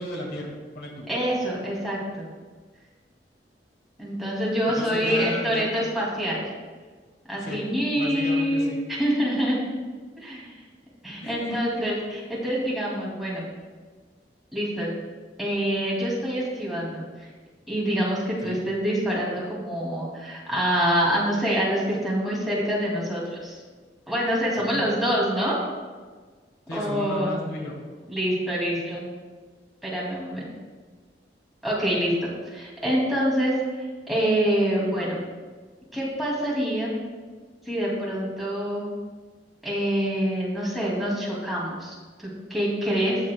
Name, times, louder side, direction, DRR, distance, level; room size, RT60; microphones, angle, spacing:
voice 1, 0.0-1.1 4.8-5.6 7.4-7.6 8.0-8.8 11.2-11.8 18.4-18.7 24.6-25.0 26.7-27.7, left 1 dB, 65° left, -1 dB, 1.8 m, -34 dB
voice 2, 1.1-2.3 4.0-6.4 7.3-9.6 10.2-10.5 11.0-13.5 14.5-15.0 15.4-17.3 17.7-23.6 24.1-25.6 26.7-27.4 28.1-29.0 29.8-30.4 31.6-32.1 32.5-33.5 34.1-35.2 35.9-37.0 37.6-38.9 39.6-43.2, equal, ahead, -6 dB, 2.5 m, -26 dB
16.5 x 7.3 x 2.3 m, 1.4 s
head